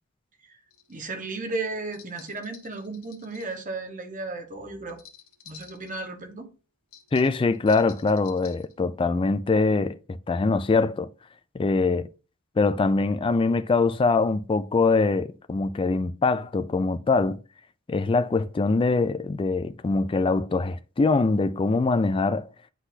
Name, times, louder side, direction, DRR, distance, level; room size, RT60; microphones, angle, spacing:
sound 1, 0.7-1.0 1.9-3.6 4.9-6.0 6.9-8.7, left 8 dB, 80° left, 1.3 m, -50 dB
voice 1, 0.9-5.0 5.4-6.5, right 3 dB, 40° right, 1.2 m, -34 dB
voice 2, 7.1-10.0 10.3-11.1 11.5-12.1 12.6-17.4 17.9-22.5, left 3 dB, 25° left, 0.3 m, -23 dB
9.8 x 4.0 x 2.7 m
head